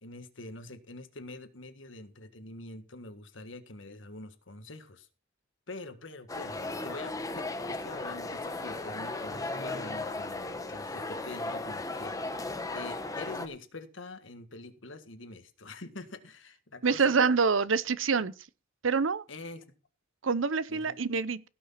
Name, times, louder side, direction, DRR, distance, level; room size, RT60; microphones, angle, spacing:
voice 1, 0.0-5.1 5.7-12.4 12.7-17.2 19.3-19.6 20.7-21.0, left 2 dB, 70° left, 1.7 m, -45 dB
sound 1, 6.3-13.5, left 2 dB, 15° left, 1.1 m, -36 dB
voice 2, 16.8-18.3 18.8-19.2 20.2-21.4, right 5 dB, 75° right, 0.7 m, -26 dB
16.5 x 6.3 x 5.7 m
head